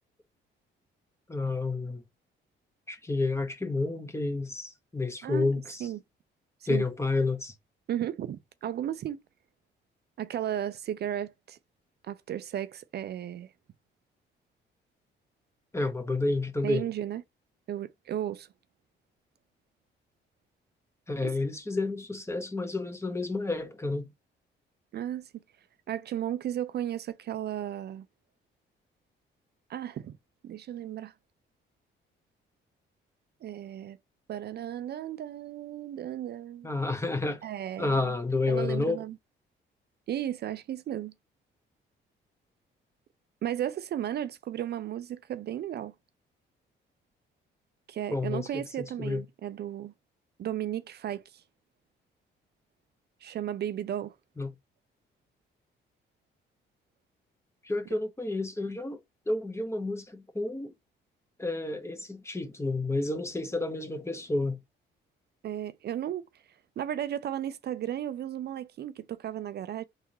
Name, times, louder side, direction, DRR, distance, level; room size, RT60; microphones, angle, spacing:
voice 1, 1.3-2.0 2.9-5.9 6.7-7.5 15.7-16.9 21.1-24.1 36.6-37.4 37.8-39.0 48.1-49.2 54.4-54.5 57.6-59.0 59.3-60.7 61.4-64.6, left 3 dB, 15° left, 1.1 m, -30 dB
voice 2, 7.9-9.2 10.2-11.6 12.0-13.5 16.6-17.2 17.7-18.5 21.2-21.3 24.9-25.4 25.9-28.0 29.7-30.2 30.4-31.1 33.4-34.0 34.3-36.7 37.4-38.1 38.5-39.1 40.1-41.1 43.4-45.9 47.9-49.9 50.4-51.4 53.2-54.2 65.4-66.2 66.8-69.8, right 11 dB, 55° right, 0.4 m, -34 dB
4.0 x 3.5 x 3.1 m
cardioid pair, 90°, 20 cm